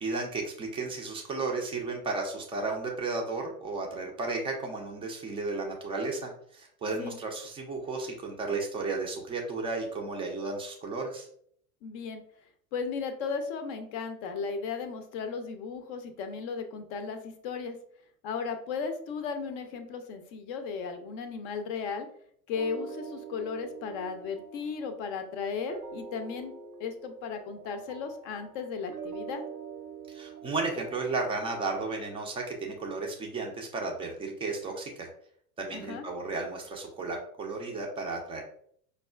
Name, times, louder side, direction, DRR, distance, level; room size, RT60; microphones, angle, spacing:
voice 1, 0.0-11.3 30.1-35.1 35.6-38.4, right 3 dB, 15° right, 1 dB, 0.4 m, -34 dB
voice 2, 11.8-12.2 12.7-17.8 18.2-22.1 22.5-26.5 26.8-29.4 35.7-36.1, left 5 dB, 35° left, 7 dB, 0.5 m, -35 dB
sound 1, 22.5-31.7, right 6 dB, 80° right, 0.7 m, -45 dB
5.2 x 2.3 x 2.3 m, 0.64 s
figure-of-eight pair, 90°, 45 cm